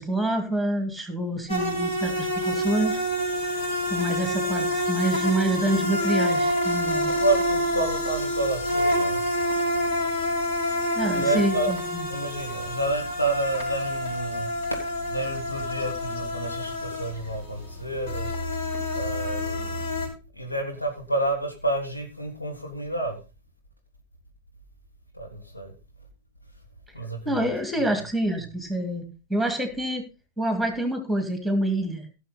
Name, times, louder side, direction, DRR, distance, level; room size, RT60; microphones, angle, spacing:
voice 1, 0.0-3.0 3.9-7.1 11.0-12.0 27.3-30.0 30.4-32.1, right 1 dB, ahead, 2.6 m, -27 dB
sound 1, 1.5-20.1, equal, 60° left, 6.5 m, -27 dB
voice 2, 7.1-9.2 11.1-11.7 12.1-14.5 15.1-18.3 18.9-19.8 20.3-23.2 25.1-25.7 26.9-27.5, right 2 dB, 85° left, 3.0 m, -29 dB
16.5 x 6.7 x 4.1 m
figure-of-eight pair, 90°, 0 cm